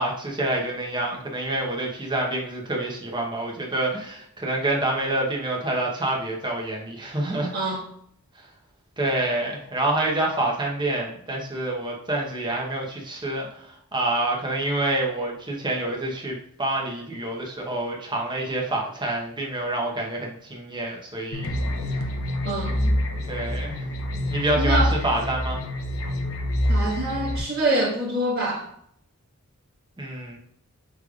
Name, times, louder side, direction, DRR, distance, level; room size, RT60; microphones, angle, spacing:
voice 1, 0.0-7.5 9.0-21.5 23.3-23.8 24.3-25.6 30.0-30.4, right 1 dB, 20° right, -1 dB, 0.9 m, -27 dB
voice 2, 7.5-7.8 22.4-23.0 24.6-24.9 26.7-28.7, right 1 dB, 45° right, -4 dB, 1.4 m, -25 dB
sound 1, 21.3-27.4, left 1 dB, 75° left, 0.7 m, -26 dB
6.3 x 3.3 x 2.4 m, 0.69 s
head